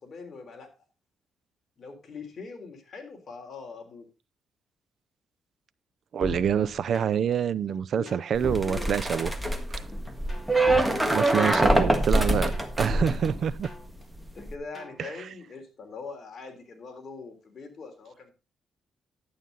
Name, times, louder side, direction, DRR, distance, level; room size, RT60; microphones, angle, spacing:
voice 1, 0.0-0.7 1.8-4.1 7.9-8.1 8.4-9.1 10.6-12.3 14.3-18.3, left 4 dB, 45° left, 3.6 m, -43 dB
voice 2, 6.1-9.3 11.1-12.5 12.8-13.7 15.0-15.1, right 8 dB, 60° right, 0.6 m, -26 dB
sound 1, 6.2-7.3 7.7-9.6 9.9-11.8 12.1-14.0 14.4-15.0, left 2 dB, 10° left, 4.2 m, -39 dB
sound 2, 8.3-13.9 14.2-14.5, right 1 dB, 5° right, 1.6 m, -25 dB
11.5 x 9.1 x 4.0 m
cardioid pair, 110°, 0 cm